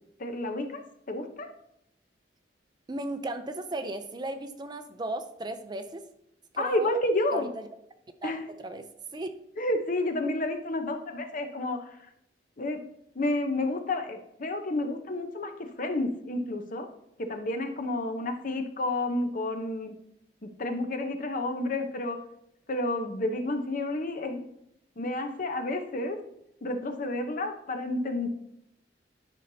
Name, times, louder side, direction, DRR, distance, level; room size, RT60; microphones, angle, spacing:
voice 1, 0.2-0.8 1.1-1.5 6.6-7.5 8.2-8.4 9.6-12.0 12.6-12.8 13.1-16.9 17.2-19.9 20.4-22.2 22.7-24.4 25.0-26.2 26.6-28.3, left 2 dB, 50° left, 6 dB, 0.8 m, -30 dB
voice 2, 2.9-6.0 6.5-7.0 7.3-7.5 8.2-8.3 8.6-8.9 9.1-9.3, right 1 dB, 25° right, 9 dB, 0.5 m, -35 dB
11.5 x 5.5 x 2.8 m, 0.77 s
head